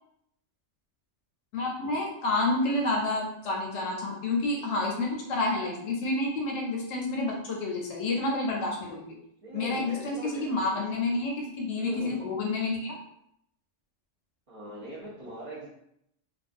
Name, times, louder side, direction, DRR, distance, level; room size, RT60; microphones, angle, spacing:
voice 1, 1.5-9.2 9.5-13.0, left 2 dB, 65° left, -2 dB, 0.8 m, -29 dB
voice 2, 9.4-11.2 11.8-12.3 14.5-15.7, right 1 dB, 50° right, -7 dB, 0.4 m, -41 dB
2.4 x 2.3 x 2.4 m, 0.76 s
omnidirectional pair, 1.4 m